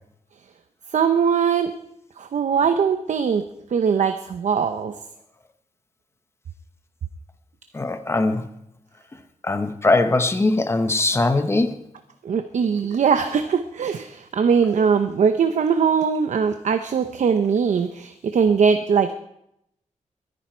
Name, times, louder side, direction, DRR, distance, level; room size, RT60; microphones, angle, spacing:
voice 1, 0.9-1.7 2.2-3.4 3.7-4.9 12.2-19.1, right 6 dB, 70° right, 8 dB, 0.8 m, -21 dB
voice 2, 7.7-8.5 9.4-11.7, left 2 dB, 20° left, 8 dB, 1.0 m, -21 dB
22.0 x 10.5 x 4.5 m, 0.78 s
wide cardioid pair, 175°, 13 cm